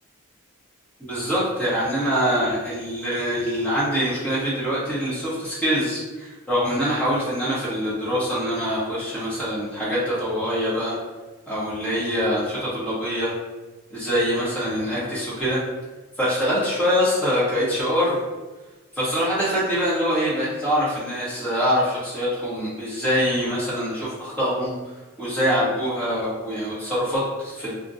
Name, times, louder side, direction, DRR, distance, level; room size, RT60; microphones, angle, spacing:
voice 1, 1.0-10.9 11.5-13.3 13.9-15.6 16.2-18.2 19.0-24.7 25.2-27.7, equal, 5° left, -9 dB, 1.0 m, -24 dB
2.4 x 2.2 x 3.9 m, 1.2 s
head